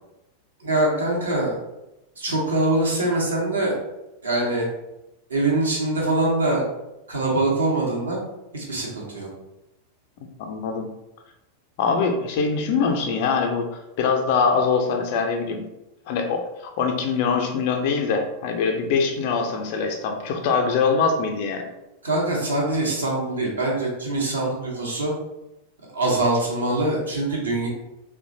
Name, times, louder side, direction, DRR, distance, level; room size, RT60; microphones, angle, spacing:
voice 1, 0.6-1.5 2.2-3.8 4.2-4.6 5.3-6.6 7.1-8.2 8.5-9.3 22.0-25.1 25.9-27.7, right 2 dB, 75° right, -3 dB, 0.9 m, -23 dB
voice 2, 10.4-10.9 11.8-13.7 14.0-15.6 16.1-21.7, left 5 dB, 45° left, 3 dB, 0.5 m, -23 dB
3.0 x 2.2 x 2.7 m, 0.94 s
figure-of-eight pair, 90°, 0 cm